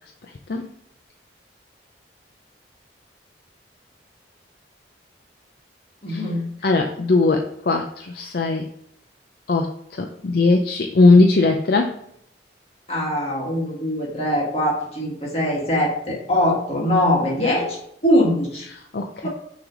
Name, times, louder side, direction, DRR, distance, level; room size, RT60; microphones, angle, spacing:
voice 1, 6.0-6.5 12.9-17.8 18.0-18.7 19.2-19.3, left 1 dB, 35° left, -3 dB, 1.8 m, -22 dB
voice 2, 6.6-8.7 9.5-12.0 18.9-19.3, left 3 dB, 55° left, 3 dB, 0.5 m, -19 dB
6.2 x 3.3 x 4.8 m, 0.70 s
head